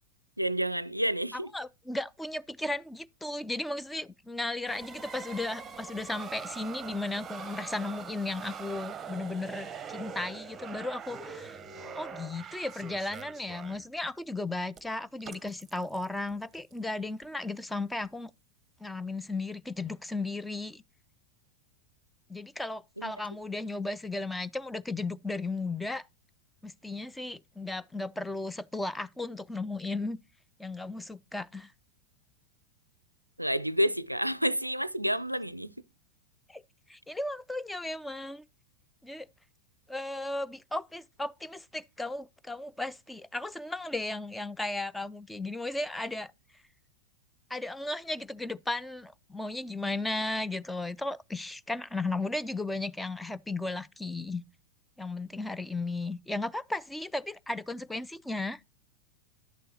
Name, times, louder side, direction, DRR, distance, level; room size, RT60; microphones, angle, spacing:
voice 1, 0.4-1.5 23.0-23.1 33.4-35.7, equal, 90° right, 0.4 m, -29 dB
voice 2, 1.3-11.6 11.9-18.3 18.8-20.8 22.3-26.0 26.6-30.2 30.6-31.7 36.5-36.6 36.9-38.4 39.0-39.3 39.9-46.3 47.5-54.4 55.0-58.6, left 2 dB, 5° left, 0.3 m, -35 dB
sound 1, 4.7-13.9 14.8-14.9 15.2-17.2 18.0-18.1, right 6 dB, 20° right, 0.9 m, -43 dB
11.0 x 6.7 x 2.9 m
figure-of-eight pair, 90°, 0 cm